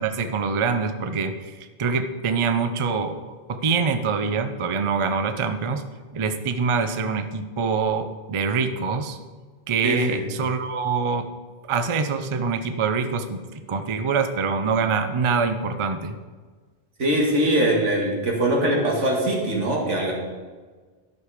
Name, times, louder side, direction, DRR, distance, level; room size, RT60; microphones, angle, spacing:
voice 1, 0.0-5.9 6.1-9.2 9.7-11.3 11.7-13.4 13.7-16.2, right 5 dB, 35° right, 8 dB, 0.5 m, -25 dB
voice 2, 9.8-10.2 17.0-20.1, right 1 dB, 90° right, -1 dB, 2.3 m, -22 dB
12.5 x 6.5 x 4.9 m, 1.4 s
omnidirectional pair, 1.2 m